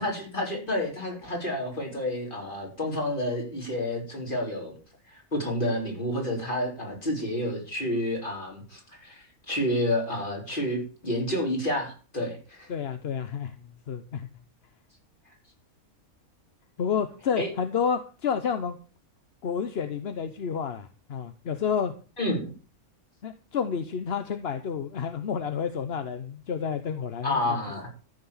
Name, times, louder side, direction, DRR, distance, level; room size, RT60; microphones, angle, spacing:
voice 1, 0.0-4.7 5.1-12.7 17.4-17.5 22.2-22.5 27.2-27.9, left 1 dB, 35° left, 0 dB, 4.4 m, -30 dB
voice 2, 12.7-13.5 13.9-14.3 16.8-18.8 19.4-21.9 23.2-27.6, left 7 dB, 50° left, 9 dB, 1.0 m, -30 dB
14.0 x 6.7 x 7.2 m, 0.37 s
omnidirectional pair, 1.6 m